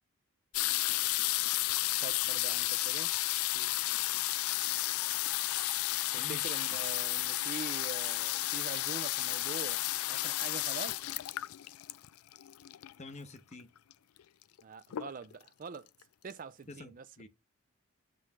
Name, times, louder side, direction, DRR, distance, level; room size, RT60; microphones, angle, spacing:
sound 1, 0.5-13.1 13.9-14.0 14.2-14.6 14.9-15.5 16.0-16.1 16.3-16.4, left 16 dB, 85° left, 0.4 m, -32 dB
voice 1, 2.0-3.1 3.4-3.7 6.1-9.8 10.1-11.1 14.6-15.9 16.2-17.0, right 5 dB, 40° right, 0.4 m, -44 dB
voice 2, 6.2-6.8 13.0-13.7 16.7-17.3, left 3 dB, 30° left, 0.9 m, -48 dB
7.6 x 3.2 x 6.0 m
head